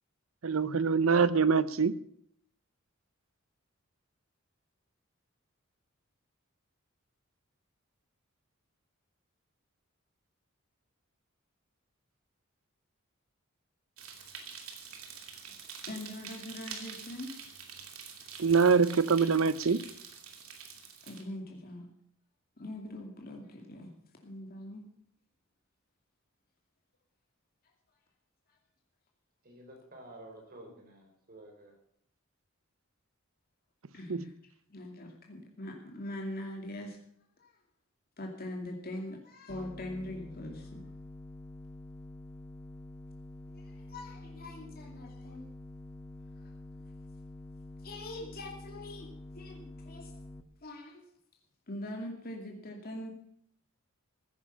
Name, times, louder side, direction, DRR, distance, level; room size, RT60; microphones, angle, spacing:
voice 1, 0.4-1.9 18.4-19.8 34.1-34.2, right 5 dB, 70° right, 17 dB, 0.7 m, -24 dB
sound 1, 14.0-21.2, right 6 dB, 90° right, 2.8 m, -46 dB
voice 2, 15.9-17.3 21.1-21.9 22.6-23.9 24.2-24.8 33.9-34.3 34.7-37.0 37.4-37.5 38.2-40.8 43.5-45.5 46.4-46.5 47.8-49.1 49.3-50.1 50.6-51.1 51.7-53.1, left 1 dB, 45° left, 1 dB, 2.5 m, -42 dB
voice 3, 29.4-31.8, right 1 dB, 45° right, 2 dB, 4.7 m, -51 dB
sound 2, 39.5-50.4, left 2 dB, 10° left, 0.9 m, -47 dB
15.5 x 10.0 x 6.8 m, 0.68 s
head